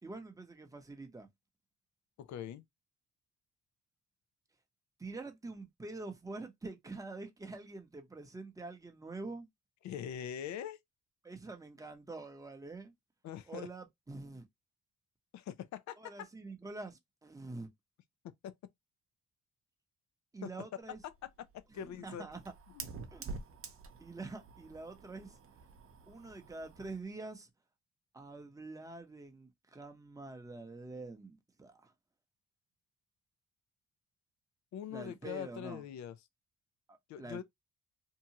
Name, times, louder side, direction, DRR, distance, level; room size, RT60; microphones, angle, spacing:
voice 1, 0.0-1.3 5.0-9.5 11.2-12.9 13.5-14.5 16.0-17.7 20.3-21.0 21.7-22.4 23.1-23.3 24.0-25.4 26.1-27.5 28.1-31.9 34.9-35.8 36.9-37.4, right 3 dB, 10° right, 0.7 m, -46 dB
voice 2, 2.2-2.6 9.8-10.8 13.2-13.7 15.3-16.3 18.4-18.5 20.4-20.5 21.0-21.5 21.7-22.2 22.7-22.9 34.7-36.2 37.1-37.4, left 9 dB, 65° left, 0.5 m, -42 dB
Fire, 20.8-27.0, right 4 dB, 45° right, 0.7 m, -49 dB
2.8 x 2.2 x 2.8 m
cardioid pair, 90°, 30 cm